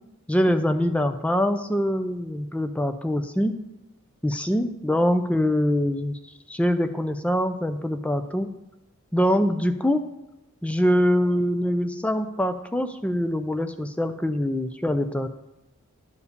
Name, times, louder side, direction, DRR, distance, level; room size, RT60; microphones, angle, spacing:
voice 1, 0.3-3.6 4.2-6.2 6.5-8.5 9.1-10.0 10.6-15.3, equal, 5° left, 8 dB, 0.4 m, -24 dB
11.0 x 4.8 x 6.7 m, 0.94 s
head